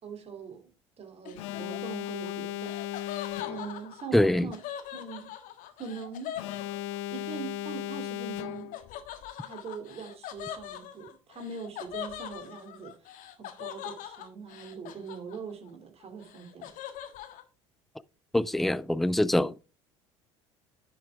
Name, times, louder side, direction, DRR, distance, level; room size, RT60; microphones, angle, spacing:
voice 1, 0.0-0.7 1.0-2.8 3.1-4.6 4.9-5.3 5.8-6.4 7.1-8.7 9.4-16.7, right 5 dB, 40° right, 2.6 m, -42 dB
Laughter, 1.2-7.3 8.7-15.7 16.0-17.4, left 11 dB, 55° left, 1.6 m, -42 dB
Alarm, 1.4-3.9 6.4-8.9, left 15 dB, 70° left, 0.7 m, -36 dB
voice 2, 4.1-4.5 18.3-19.5, left 1 dB, ahead, 0.4 m, -24 dB
10.0 x 6.9 x 3.5 m
hypercardioid pair, 65°, 16 cm